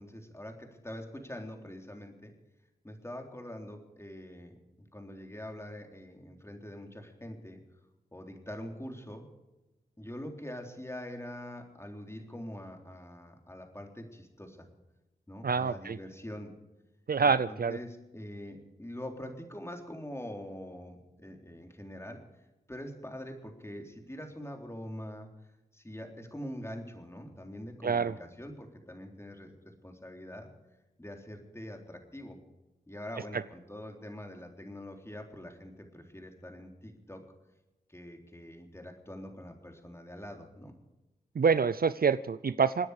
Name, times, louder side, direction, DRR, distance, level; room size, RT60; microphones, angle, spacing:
voice 1, 0.0-2.3 2.8-7.6 8.1-9.3 10.0-14.7 15.3-16.5 17.2-22.2 22.7-25.3 25.7-30.5 31.0-32.4 32.9-37.2 37.9-40.7, left 1 dB, 15° left, 2 dB, 3.7 m, -44 dB
voice 2, 15.4-16.0 17.1-17.8 27.8-28.1 41.4-42.9, right 5 dB, 60° right, 15 dB, 0.6 m, -26 dB
26.5 x 9.8 x 5.1 m, 1.0 s
cardioid pair, 50°, 18 cm